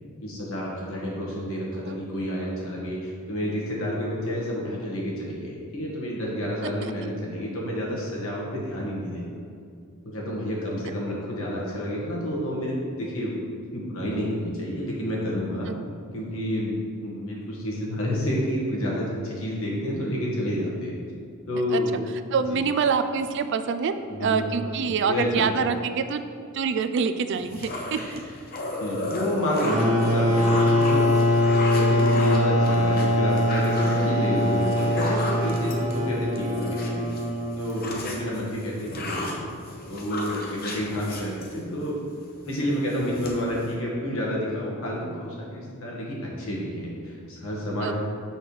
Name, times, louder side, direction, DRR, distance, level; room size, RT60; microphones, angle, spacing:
voice 1, 0.2-9.2 10.0-13.3 13.7-15.7 16.1-16.8 17.0-20.9 21.5-21.9 22.5-22.6 24.1-24.5 24.8-25.6 28.8-31.2 31.6-37.1 37.6-39.4 39.8-42.0 42.4-47.9, equal, 75° left, -4 dB, 1.5 m, -29 dB
voice 2, 22.3-23.9 24.2-26.2 26.5-28.2 47.8-47.9, right 6 dB, 55° right, 10 dB, 0.3 m, -25 dB
sound 1, 27.3-37.2 37.5-41.9 42.3-42.6 42.9-43.7, left 2 dB, 45° left, 0.8 m, -34 dB
sound 2, 29.6-38.1, equal, 35° right, 0.9 m, -22 dB
6.3 x 6.1 x 3.2 m, 2.3 s
head